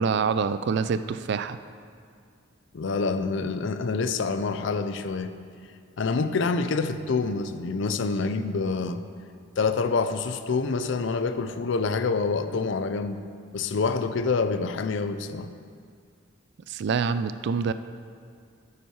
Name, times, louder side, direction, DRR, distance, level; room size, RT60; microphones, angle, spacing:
voice 1, 0.0-1.6 16.7-17.7, right 5 dB, 60° right, 13 dB, 0.4 m, -26 dB
voice 2, 2.7-5.3 6.0-9.0 9.6-13.2 13.5-15.5, left 4 dB, 65° left, 10 dB, 0.5 m, -27 dB
9.2 x 8.1 x 4.7 m, 2.2 s
head